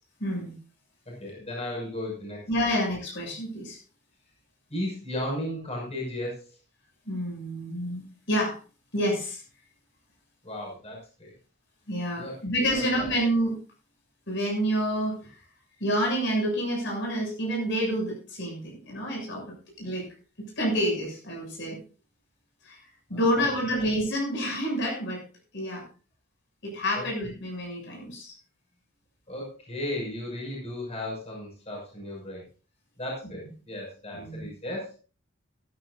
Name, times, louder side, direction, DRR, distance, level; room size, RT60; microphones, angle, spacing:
voice 1, 0.2-0.5 2.5-3.8 7.1-8.6 8.9-9.4 11.9-13.6 14.3-15.2 15.8-19.4 19.8-20.1 20.4-21.8 22.6-22.8 23.1-25.2 25.5-25.8 26.6-28.4 34.1-34.5, equal, 65° left, -1 dB, 7.0 m, -28 dB
voice 2, 1.1-2.4 4.7-6.5 10.4-11.3 12.2-12.4 12.7-13.1 23.1-23.5 26.9-27.0 29.3-32.4 33.0-35.0, left 1 dB, 35° left, -2 dB, 6.2 m, -35 dB
15.0 x 14.5 x 2.6 m, 0.35 s
head